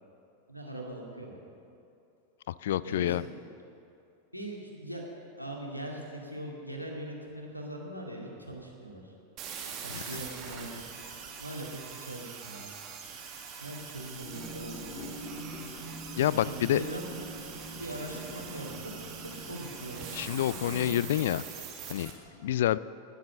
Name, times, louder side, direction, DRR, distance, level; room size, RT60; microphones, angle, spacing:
voice 1, 0.5-1.4 2.8-3.3 4.3-5.0 5.4-9.1 9.8-10.8 11.4-12.7 13.6-15.1 16.3-17.0 17.7-18.9 19.2-20.1 20.3-20.9, right 1 dB, 90° left, -1 dB, 2.2 m, -41 dB
voice 2, 2.5-3.2 9.9-10.0 16.2-16.8 20.1-21.4 21.9-22.1 22.4-22.8, left 12 dB, 55° left, 19 dB, 0.3 m, -28 dB
sound 1, 9.4-22.1, right 6 dB, 35° right, 2.1 m, -43 dB
sound 2, 14.2-20.9, equal, 15° left, 2.9 m, -44 dB
19.5 x 7.5 x 6.7 m, 2.7 s
figure-of-eight pair, 90°, 0 cm